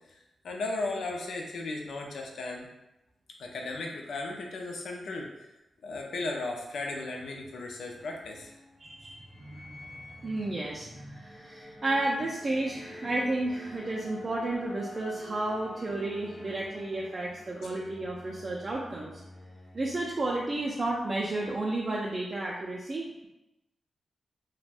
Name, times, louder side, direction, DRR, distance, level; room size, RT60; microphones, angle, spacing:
voice 1, 0.4-2.7 3.4-5.5 5.8-8.5 17.5-17.7, left 2 dB, 90° left, 1 dB, 0.4 m, -36 dB
sound 1, 7.4-21.0, equal, 30° left, 0.5 m, -48 dB
voice 2, 8.8-19.2 19.7-23.3, right 2 dB, 35° right, -4 dB, 0.3 m, -32 dB
2.4 x 2.1 x 3.3 m, 0.92 s
wide cardioid pair, 150°, 0 cm